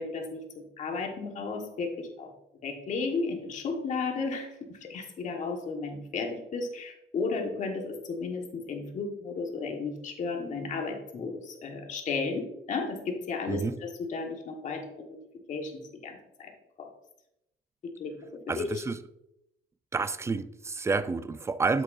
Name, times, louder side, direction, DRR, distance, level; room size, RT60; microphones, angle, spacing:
voice 1, 0.0-2.3 2.6-15.2 15.5-16.5 16.8-16.9 17.8-18.2 18.6-18.7, left 4 dB, 45° left, 2 dB, 1.5 m, -34 dB
voice 2, 13.5-13.8 18.5-19.0 19.9-21.8, right 4 dB, 15° right, 14 dB, 0.4 m, -29 dB
8.0 x 7.4 x 2.7 m, 0.84 s
cardioid pair, 110°, 17 cm